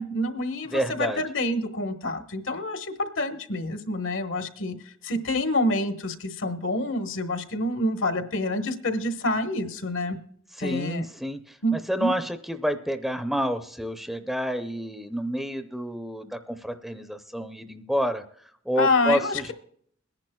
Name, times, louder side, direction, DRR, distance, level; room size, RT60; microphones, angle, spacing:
voice 1, 0.0-4.7 5.0-10.2 10.6-11.0 11.6-11.7 12.0-12.1 18.8-19.4, left 1 dB, 75° left, 8 dB, 1.2 m, -27 dB
voice 2, 0.7-1.2 10.5-18.2 18.7-19.5, equal, ahead, 8 dB, 0.5 m, -29 dB
22.0 x 10.5 x 2.3 m, 0.63 s
head